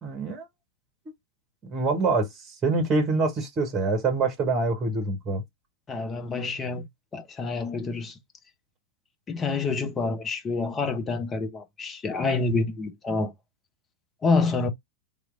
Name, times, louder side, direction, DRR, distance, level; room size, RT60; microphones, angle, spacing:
voice 1, 0.0-0.5 1.6-5.4, right 3 dB, 25° right, 1.4 m, -25 dB
voice 2, 5.9-6.9 7.1-8.2 9.3-13.3 14.2-14.7, left 3 dB, 20° left, 0.9 m, -27 dB
3.7 x 3.2 x 2.5 m
figure-of-eight pair, 90°, 0 cm